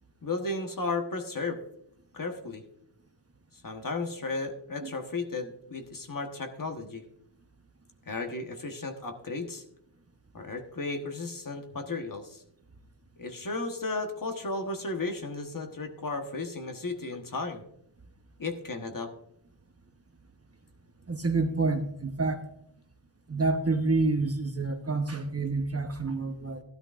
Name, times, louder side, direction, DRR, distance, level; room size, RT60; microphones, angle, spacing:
voice 1, 0.2-1.6 2.1-2.6 3.6-7.0 8.1-9.6 10.3-12.4 13.2-17.6 18.4-19.1, left 3 dB, 40° left, 5 dB, 1.3 m, -34 dB
voice 2, 21.1-22.4 23.3-26.6, right 3 dB, 30° right, 6 dB, 1.0 m, -28 dB
13.5 x 12.0 x 2.5 m, 0.71 s
wide cardioid pair, 130°, 48 cm